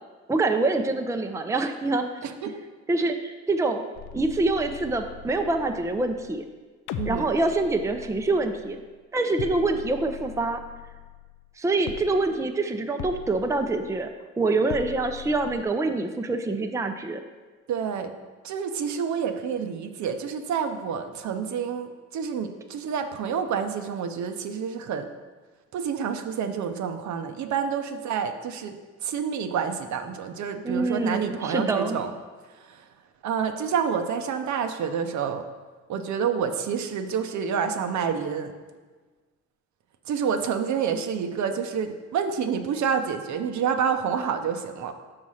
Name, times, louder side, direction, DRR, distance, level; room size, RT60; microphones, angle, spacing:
voice 1, 0.3-2.2 2.9-3.8 4.1-6.4 7.1-8.8 9.1-10.6 11.6-14.1 14.4-17.2 30.6-32.0, right 2 dB, 10° right, 6 dB, 0.5 m, -25 dB
voice 2, 2.2-2.5 7.0-7.3 17.7-18.1 18.4-25.1 25.7-28.8 29.0-32.1 32.7-32.8 33.2-35.4 35.9-38.5 40.1-44.9, right 7 dB, 70° right, 7 dB, 0.7 m, -28 dB
sound 1, 3.9-6.5 6.9-9.0 9.4-11.6 11.9-12.5 13.0-14.2 14.7-15.6, left 8 dB, 85° left, 0.5 m, -41 dB
5.7 x 4.3 x 6.3 m, 1.4 s
cardioid pair, 90°, 30 cm